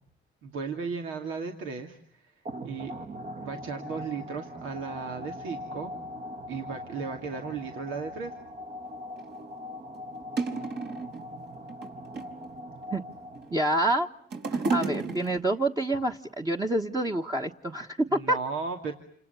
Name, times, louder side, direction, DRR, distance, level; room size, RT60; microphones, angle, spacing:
voice 1, 0.4-2.3 2.6-2.9 3.4-5.9 6.5-8.3 18.1-18.9, right 5 dB, 90° right, 3 dB, 2.6 m, -35 dB
sound 1, 2.5-13.8, left 1 dB, 40° right, 1.3 m, -41 dB
sound 2, 9.2-9.3 9.9-10.0 10.4-11.2 11.7-12.5 13.1-13.7 14.0-15.6 16.4-16.5, right 4 dB, 60° right, 5.1 m, -31 dB
voice 2, 13.5-14.1 14.5-18.4, right 1 dB, 20° right, 2 dB, 1.3 m, -27 dB
29.0 x 27.5 x 7.1 m, 0.67 s
cardioid pair, 90°, 20 cm